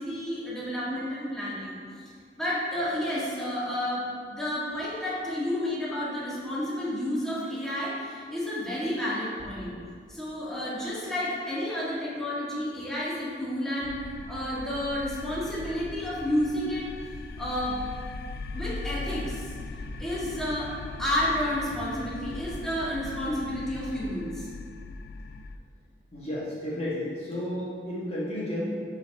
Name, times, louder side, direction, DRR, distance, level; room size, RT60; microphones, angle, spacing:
voice 1, 0.0-1.8 2.0-9.7 10.1-13.9 14.3-16.9 17.4-17.8 18.5-19.5 20.0-20.7 21.0-24.5, left 1 dB, 5° left, -8 dB, 1.7 m, -31 dB
sound 1, 13.8-25.6, left 3 dB, 60° left, 0.3 m, -39 dB
voice 2, 26.1-28.8, left 1 dB, 35° left, -7 dB, 1.3 m, -32 dB
10.5 x 5.0 x 3.5 m, 2.1 s
head